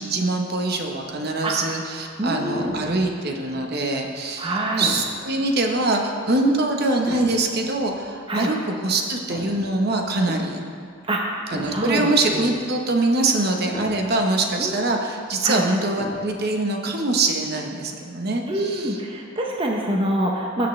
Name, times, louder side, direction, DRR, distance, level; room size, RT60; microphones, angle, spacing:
voice 1, 0.0-10.6 11.5-19.0, right 2 dB, 50° right, 2 dB, 1.0 m, -23 dB
sound 1, 0.8-16.5, left 1 dB, 25° left, 1.7 m, -41 dB
voice 2, 2.2-2.8 4.4-4.9 6.4-6.6 8.3-8.5 10.3-10.4 11.0-11.3 11.7-12.5 14.6-14.7 15.4-15.6 18.5-20.7, right 1 dB, 25° right, -1 dB, 0.7 m, -25 dB
17.5 x 7.0 x 3.2 m, 2.2 s
head